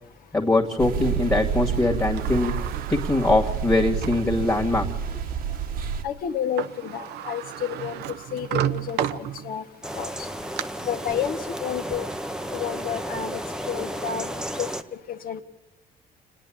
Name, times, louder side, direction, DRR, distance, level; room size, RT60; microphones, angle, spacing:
voice 1, 0.3-2.5 2.9-4.9, left 2 dB, 15° left, -2 dB, 2.2 m, -22 dB
sound 1, 0.8-6.0, right 8 dB, 60° right, 1.4 m, -29 dB
Sliding door, 1.7-4.3 4.9-5.0 6.3-6.4 6.6-9.7 10.2-10.6, right 10 dB, 80° right, 0.8 m, -32 dB
voice 2, 6.0-8.0 8.3-9.6 9.9-10.3 10.8-12.1 12.5-13.4 13.7-14.3 14.6-14.7 15.1-15.4, left 8 dB, 60° left, 6 dB, 1.7 m, -30 dB
sound 2, 9.8-14.8, equal, 5° right, 0.9 m, -33 dB
29.5 x 10.0 x 8.7 m, 0.99 s
cardioid pair, 110°, 17 cm